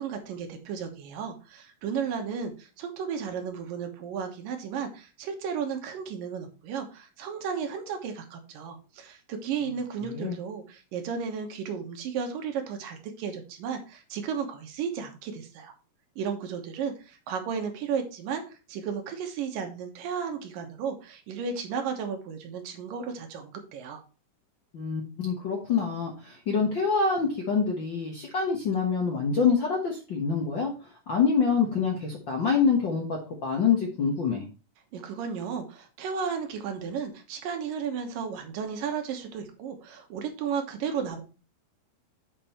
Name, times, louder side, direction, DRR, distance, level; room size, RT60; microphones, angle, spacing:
voice 1, 0.0-15.7 16.2-24.0 34.9-41.2, right 6 dB, 85° right, 4 dB, 2.9 m, -34 dB
voice 2, 10.1-10.4 24.7-30.7 31.1-34.4, left 5 dB, 55° left, 0 dB, 1.3 m, -26 dB
7.5 x 5.4 x 4.3 m, 0.33 s
omnidirectional pair, 3.9 m